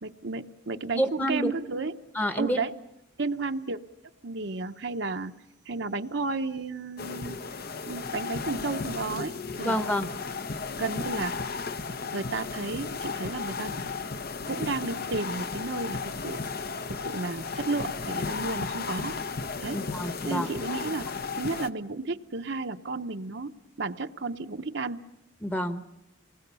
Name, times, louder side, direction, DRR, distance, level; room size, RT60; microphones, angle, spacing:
voice 1, 0.0-1.9 2.3-2.7 3.2-3.8 4.2-5.3 5.7-7.4 7.9-9.8 10.8-11.3 12.1-13.8 14.5-16.4 16.9-19.1 19.6-19.8 20.3-21.1 21.4-23.5 23.8-25.0, right 3 dB, 55° right, 7 dB, 0.8 m, -32 dB
voice 2, 0.9-1.5 2.1-2.6 9.6-10.1 19.7-20.5 25.4-25.8, equal, 10° left, 9 dB, 1.0 m, -28 dB
sound 1, 7.0-21.7, left 4 dB, 50° left, 0.8 m, -34 dB
28.5 x 20.5 x 6.9 m, 0.91 s
head